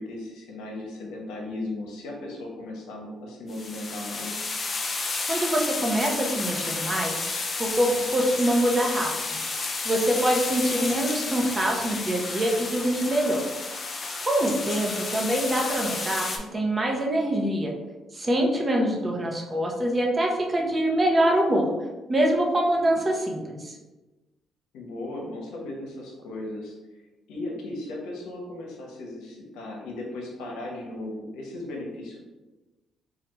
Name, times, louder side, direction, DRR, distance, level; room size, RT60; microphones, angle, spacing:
voice 1, 0.0-4.5 24.7-27.0 27.3-32.2, left 2 dB, 85° left, -1 dB, 0.7 m, -36 dB
sound 1, 3.5-16.4, left 3 dB, 45° left, 0.5 m, -31 dB
voice 2, 5.3-7.2 7.6-9.4 9.8-13.4 14.2-17.7 18.1-21.7 22.1-23.8, right 1 dB, 30° right, 0 dB, 0.7 m, -24 dB
3.3 x 2.3 x 3.0 m, 1.1 s
supercardioid pair, 75°, 0 cm